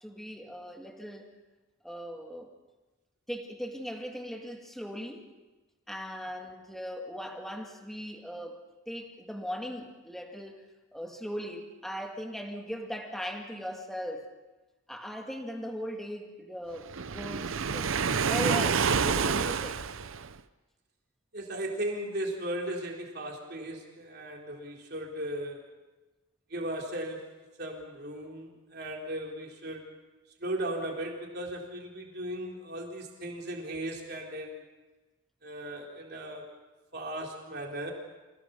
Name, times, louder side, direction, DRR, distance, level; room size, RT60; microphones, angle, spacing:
voice 1, 0.0-1.3 1.8-2.5 3.3-5.3 5.9-8.6 8.9-10.7 10.9-14.2 14.9-19.8, equal, ahead, 3 dB, 2.0 m, -39 dB
Waves surf, 16.9-20.4, right 6 dB, 70° right, 0.7 m, -28 dB
voice 2, 21.3-25.6 26.5-27.3 27.6-29.9 30.4-34.6 35.4-36.4 36.9-37.9, right 1 dB, 45° right, 0 dB, 3.9 m, -37 dB
27.0 x 17.0 x 7.0 m, 1.2 s
head